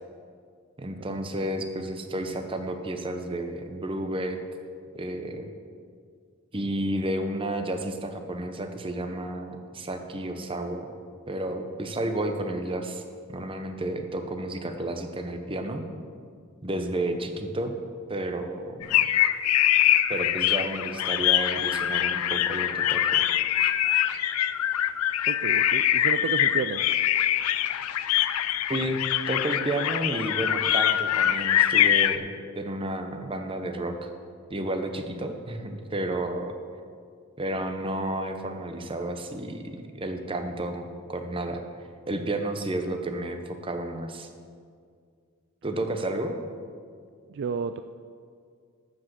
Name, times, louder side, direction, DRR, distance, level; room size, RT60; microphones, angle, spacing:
voice 1, 0.8-4.4 4.9-5.5 6.5-10.9 11.3-13.0 13.3-15.8 16.6-17.7 18.1-19.0 20.1-23.2 28.7-32.3 32.6-34.1 34.5-36.5 37.4-41.6 42.1-44.3 45.6-46.4, right 1 dB, 25° right, 6 dB, 0.8 m, -31 dB
sound 1, 18.8-32.2, left 11 dB, 80° left, 0.4 m, -24 dB
voice 2, 25.3-26.8 47.3-47.8, right 6 dB, 55° right, 9 dB, 0.3 m, -31 dB
12.5 x 5.1 x 7.6 m, 2.1 s
head